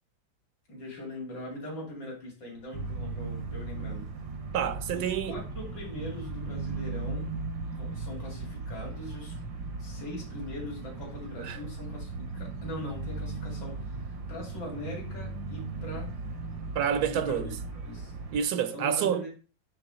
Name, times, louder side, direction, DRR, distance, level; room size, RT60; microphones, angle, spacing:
voice 1, 0.7-4.1 4.9-7.3 7.7-9.4 9.8-16.2 17.1-17.4 17.9-18.1 18.7-19.3, left 1 dB, 70° left, 3.3 m, -41 dB
sound 1, 2.7-18.4, right 3 dB, 85° right, 2.1 m, -37 dB
voice 2, 4.5-5.4 11.4-11.6 16.7-17.5 18.3-19.2, right 8 dB, 65° right, 1.1 m, -28 dB
8.9 x 3.6 x 4.9 m
omnidirectional pair, 2.0 m